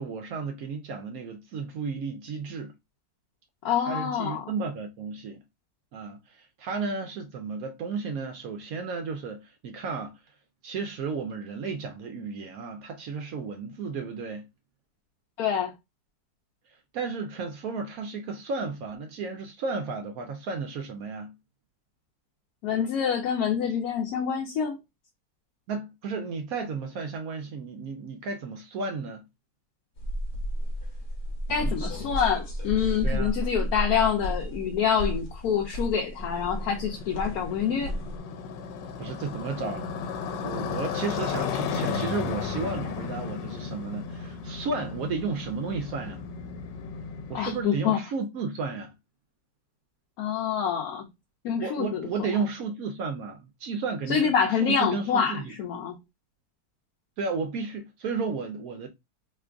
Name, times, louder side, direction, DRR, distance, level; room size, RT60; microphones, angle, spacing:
voice 1, 0.0-2.7 3.9-5.4 5.9-10.2 10.6-14.5 16.9-21.3 25.7-29.3 31.5-31.8 33.0-33.3 39.0-46.2 47.3-48.9 51.6-54.3 54.6-55.5 57.2-58.9, right 4 dB, 70° right, 0.9 m, -33 dB
voice 2, 3.6-4.5 15.4-15.7 22.6-24.8 31.5-38.0 47.3-48.0 50.2-51.1 51.4-52.1 54.1-56.0, left 7 dB, 70° left, 1.0 m, -26 dB
sound 1, 30.0-38.2, equal, 50° left, 1.1 m, -32 dB
Motorcycle, 36.2-47.6, left 6 dB, 85° left, 1.2 m, -34 dB
3.0 x 2.4 x 3.4 m
omnidirectional pair, 1.9 m